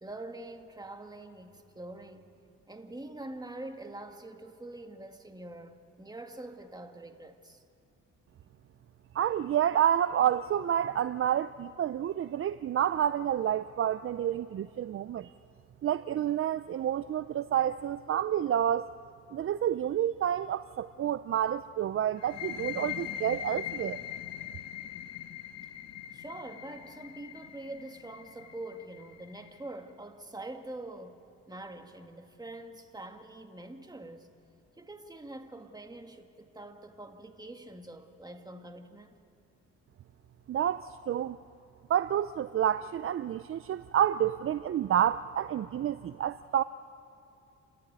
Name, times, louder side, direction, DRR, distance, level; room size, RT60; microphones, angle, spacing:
voice 1, 0.0-2.3 2.7-7.6 26.1-31.2 31.5-34.3 34.8-39.2, right 2 dB, 15° right, 1.9 m, -44 dB
voice 2, 9.1-15.3 15.8-18.9 19.3-24.0 40.5-41.4 41.9-46.6, right 10 dB, 45° right, 0.5 m, -29 dB
sound 1, 22.2-29.6, left 11 dB, 60° left, 1.5 m, -41 dB
29.5 x 14.0 x 9.5 m
cardioid pair, 90°, 30 cm